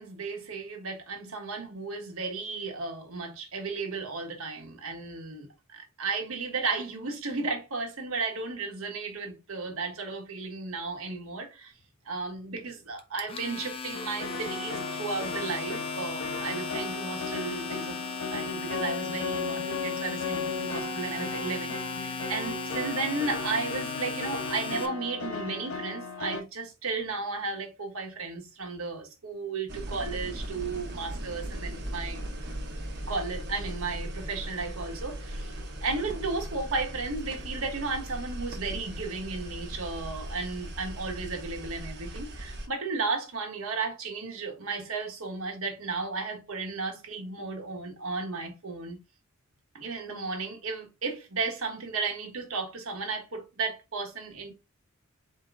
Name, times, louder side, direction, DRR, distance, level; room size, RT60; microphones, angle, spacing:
voice 1, 0.0-11.7 12.0-18.0 18.3-32.2 33.1-49.0 49.7-54.5, right 4 dB, 90° right, 1.3 m, -34 dB
Domestic sounds home sounds, 13.0-24.9, left 5 dB, 25° left, 0.6 m, -37 dB
sound 1, 13.9-26.4, left 4 dB, 90° left, 0.9 m, -36 dB
sound 2, 29.7-42.7, right 1 dB, 55° right, 1.2 m, -38 dB
4.6 x 2.9 x 3.6 m
head